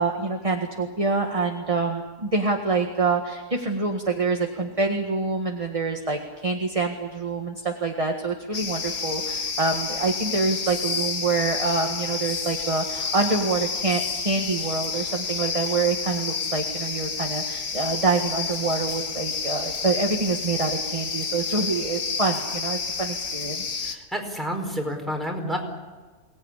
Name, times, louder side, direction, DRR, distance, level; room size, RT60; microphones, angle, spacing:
voice 1, 0.0-23.8, right 3 dB, 20° right, 2 dB, 1.7 m, -26 dB
sound 1, 8.5-24.0, left 5 dB, 60° left, 2.0 m, -30 dB
voice 2, 23.8-25.6, equal, ahead, 1 dB, 4.5 m, -29 dB
23.5 x 18.5 x 9.9 m, 1.3 s
omnidirectional pair, 1.8 m